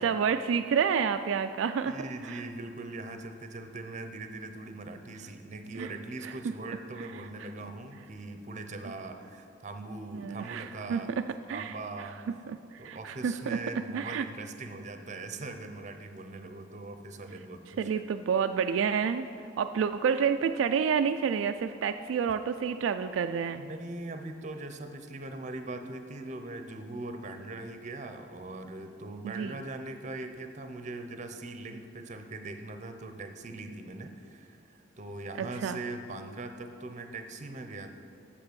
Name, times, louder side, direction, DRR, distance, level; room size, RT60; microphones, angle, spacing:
voice 1, 0.0-2.0 5.8-5.9 6.2-6.3 10.1-14.3 17.8-19.3 19.6-23.6 29.2-29.6 35.4-35.8, right 6 dB, 80° right, 8 dB, 0.3 m, -29 dB
voice 2, 1.8-11.1 11.5-12.2 12.8-18.0 23.6-37.9, right 2 dB, 40° right, 7 dB, 0.7 m, -41 dB
8.0 x 6.9 x 6.8 m, 2.5 s
head